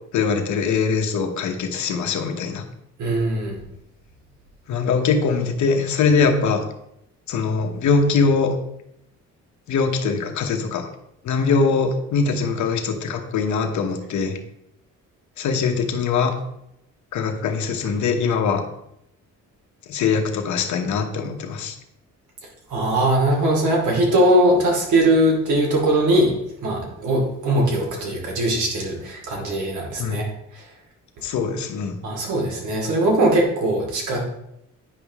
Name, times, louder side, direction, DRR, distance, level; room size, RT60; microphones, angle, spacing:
voice 1, 0.1-2.6 4.7-6.6 7.3-8.6 9.7-10.9 11.2-14.4 15.4-16.3 17.1-18.6 19.9-21.8 30.0-30.2 31.2-32.0, left 5 dB, 70° left, 5 dB, 1.1 m, -22 dB
voice 2, 3.0-3.6 22.7-26.3 26.6-30.3 30.5-30.7 32.0-34.2, right 1 dB, 75° right, 0 dB, 2.5 m, -20 dB
9.4 x 5.3 x 3.6 m, 0.80 s
cardioid pair, 90°, 30 cm